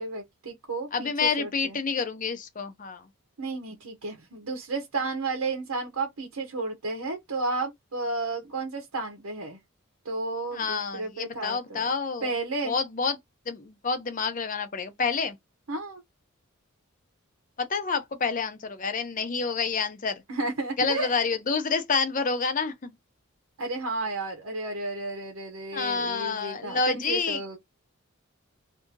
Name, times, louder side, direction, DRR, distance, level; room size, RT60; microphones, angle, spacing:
voice 1, 0.0-1.8 3.4-9.6 10.0-11.9 12.2-12.8 15.7-16.0 20.3-21.2 23.6-27.6, right 3 dB, 85° right, 0.8 m, -32 dB
voice 2, 0.9-3.0 10.5-12.3 12.6-13.2 13.5-15.4 17.6-20.2 20.8-22.9 25.7-27.4, left 5 dB, 35° left, 0.6 m, -28 dB
2.7 x 2.6 x 3.7 m
head